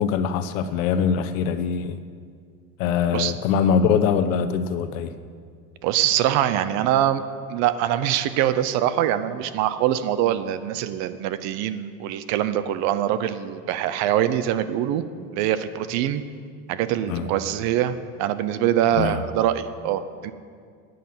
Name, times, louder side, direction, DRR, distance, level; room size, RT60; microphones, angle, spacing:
voice 1, 0.0-2.0 2.8-5.1 17.1-17.3 19.0-19.2, left 7 dB, 85° left, 11 dB, 0.9 m, -23 dB
voice 2, 5.8-7.2 7.5-15.0 15.3-16.2 16.7-20.3, right 11 dB, 45° right, 13 dB, 0.6 m, -23 dB
9.4 x 9.4 x 7.7 m, 2.1 s
cardioid pair, 165°, 39 cm